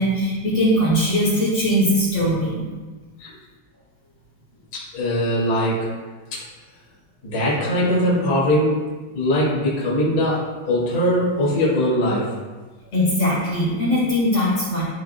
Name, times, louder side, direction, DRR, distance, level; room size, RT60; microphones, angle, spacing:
voice 1, 0.0-2.7 12.9-14.8, equal, 45° left, -8 dB, 2.1 m, -20 dB
voice 2, 4.7-5.9 6.3-6.4 7.2-8.9 9.1-12.3, equal, 30° left, -7 dB, 1.2 m, -21 dB
12.5 x 5.1 x 2.3 m, 1.3 s
omnidirectional pair, 5.1 m